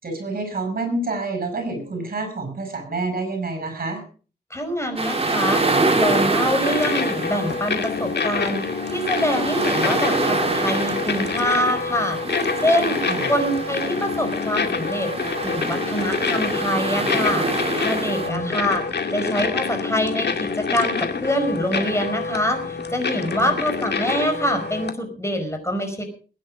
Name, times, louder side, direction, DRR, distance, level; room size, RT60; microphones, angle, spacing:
voice 1, 0.0-4.0 13.1-13.3 18.3-18.6 23.4-23.6, right 3 dB, 50° right, 7 dB, 7.1 m, -28 dB
voice 2, 4.5-5.6 5.9-8.6 8.9-12.2 12.6-13.0 13.2-15.1 15.4-18.8 19.1-26.0, equal, 15° left, 6 dB, 5.1 m, -25 dB
sound 1, 5.0-18.3, right 3 dB, 35° right, 3.3 m, -26 dB
sound 2, 6.6-24.9, left 5 dB, 65° left, 2.1 m, -27 dB
21.0 x 10.0 x 5.1 m, 0.40 s
wide cardioid pair, 90°, 18 cm